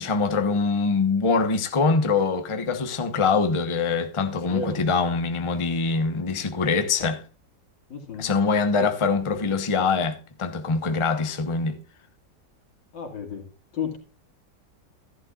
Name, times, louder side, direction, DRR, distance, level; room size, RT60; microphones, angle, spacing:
voice 1, 0.0-7.2 8.2-11.8, left 4 dB, 20° left, 0.9 m, -24 dB
voice 2, 7.9-8.3 8.8-8.9 12.9-13.5 13.7-14.0, left 5 dB, 80° left, 3.0 m, -32 dB
14.0 x 11.0 x 2.4 m
omnidirectional pair, 2.0 m